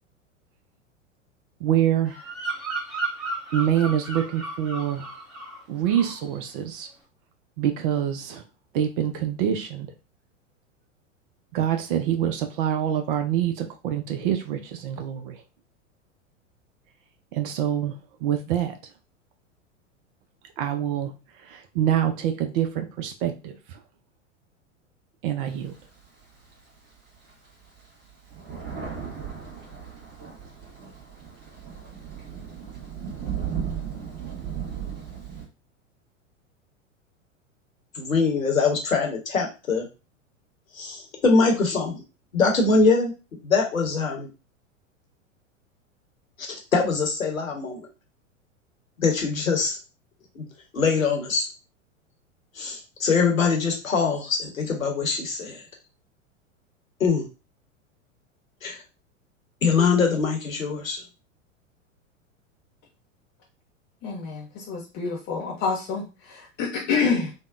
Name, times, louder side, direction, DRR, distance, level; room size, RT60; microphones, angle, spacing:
voice 1, 1.6-2.2 3.5-5.1 5.7-6.9 7.6-8.4 8.7-9.9 11.5-15.4 17.3-18.7 20.6-21.1 21.4-23.8 25.2-25.7, right 10 dB, 45° right, 6 dB, 0.5 m, -26 dB
Bird vocalization bird call bird song, 2.1-5.6 5.9-6.3, right 3 dB, ahead, 1.0 m, -34 dB
Thunder, 25.5-26.7 27.3-27.4 27.6-35.4, right 7 dB, 25° right, 1.3 m, -35 dB
voice 2, 37.9-39.9 40.7-42.0 42.3-43.1 43.4-44.3 46.5-47.9 49.0-49.8 50.4-50.5 50.7-51.5 52.6-55.6 57.0-57.2 58.6-58.8 59.6-61.0, left 4 dB, 80° left, 2 dB, 1.0 m, -23 dB
voice 3, 64.0-67.3, left 5 dB, 25° left, -2 dB, 0.5 m, -27 dB
3.4 x 2.1 x 2.4 m, 0.30 s
figure-of-eight pair, 95°, 39 cm